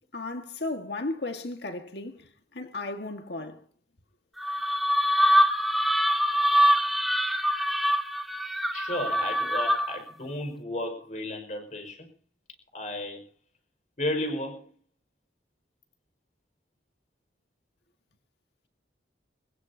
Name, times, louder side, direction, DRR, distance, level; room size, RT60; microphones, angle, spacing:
voice 1, 0.1-3.6, left 2 dB, 65° left, 1.7 m, -35 dB
sound 1, 4.4-10.1, equal, ahead, 1.2 m, -24 dB
voice 2, 8.7-12.1 12.7-13.2 14.0-14.7, left 1 dB, 40° left, 5.1 m, -33 dB
22.5 x 21.0 x 2.8 m
head